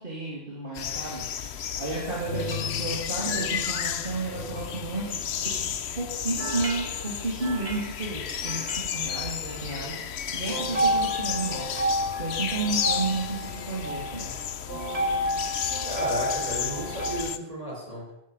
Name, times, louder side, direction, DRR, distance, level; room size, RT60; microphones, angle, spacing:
voice 1, 0.0-5.7 5.9-11.7 12.1-14.3, right 3 dB, 55° right, -5 dB, 3.5 m, -32 dB
sound 1, 0.7-17.4, left 8 dB, 90° left, 1.1 m, -33 dB
sound 2, 2.0-5.8 6.4-9.0 9.5-9.8 10.5-17.2, equal, 75° right, 3.3 m, -32 dB
voice 2, 15.8-18.1, right 1 dB, 35° right, -3 dB, 5.8 m, -33 dB
16.0 x 11.0 x 5.9 m, 0.84 s
omnidirectional pair, 1.1 m